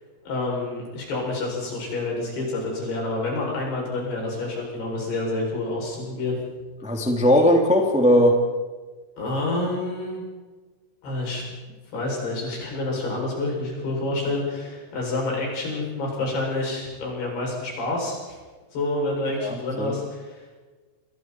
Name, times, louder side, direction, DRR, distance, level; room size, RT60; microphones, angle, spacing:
voice 1, 0.2-6.4 9.2-10.2 11.0-11.4 11.9-18.4 18.7-20.6, left 2 dB, 65° left, -2 dB, 9.5 m, -28 dB
voice 2, 6.8-8.4 19.4-20.0, equal, ahead, 2 dB, 1.8 m, -19 dB
28.0 x 22.0 x 4.6 m, 1.3 s
omnidirectional pair, 4.9 m